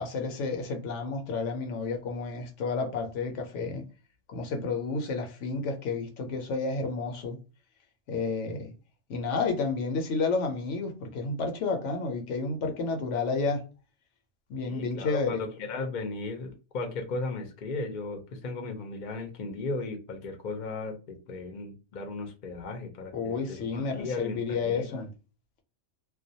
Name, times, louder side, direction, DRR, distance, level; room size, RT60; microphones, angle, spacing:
voice 1, 0.0-3.8 4.3-7.4 8.1-8.7 9.1-13.6 14.5-15.4 23.1-25.1, left 4 dB, 80° left, 0.9 m, -31 dB
voice 2, 14.6-25.0, left 3 dB, 50° left, 0.6 m, -36 dB
2.2 x 2.2 x 2.6 m
omnidirectional pair, 1.2 m